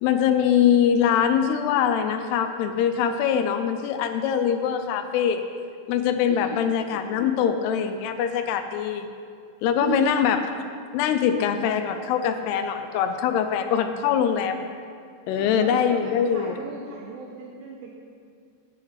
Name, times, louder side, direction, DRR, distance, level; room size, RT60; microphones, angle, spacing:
voice 1, 0.0-5.4 5.9-9.1 9.6-10.7 10.9-14.6 15.3-16.6, left 8 dB, 80° left, 8 dB, 2.5 m, -23 dB
voice 2, 9.8-10.3 15.3-18.0, right 6 dB, 75° right, -2 dB, 2.3 m, -36 dB
9.9 x 9.5 x 5.7 m, 2.2 s
omnidirectional pair, 5.1 m